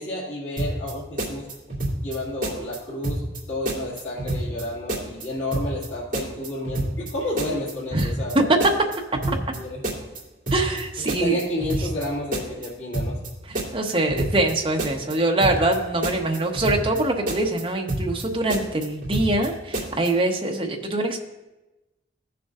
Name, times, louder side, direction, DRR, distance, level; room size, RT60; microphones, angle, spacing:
voice 1, 0.0-1.5 2.0-8.5 9.3-9.8 11.1-13.2, left 1 dB, 70° left, -9 dB, 2.0 m, -31 dB
sound 1, 0.6-0.9 1.2-2.2 2.4-2.8 3.0-3.4 3.7-4.6 4.9-5.2 5.5-5.9 6.1-7.1 7.4-7.7 8.0-8.3 8.6-9.6 9.8-10.2 10.5-10.8 11.1-12.1 12.3-12.7 12.9-13.3 13.5-14.5 14.8-15.1 15.4-15.8 16.0-17.0 17.3-17.6 17.9-18.2 18.5-19.5 19.7-20.1, right 1 dB, 45° right, 2.4 m, -28 dB
voice 2, 7.9-8.4 10.5-11.4 13.5-21.2, right 2 dB, 30° right, 1 dB, 0.9 m, -24 dB
15.5 x 6.9 x 2.5 m, 1.0 s
head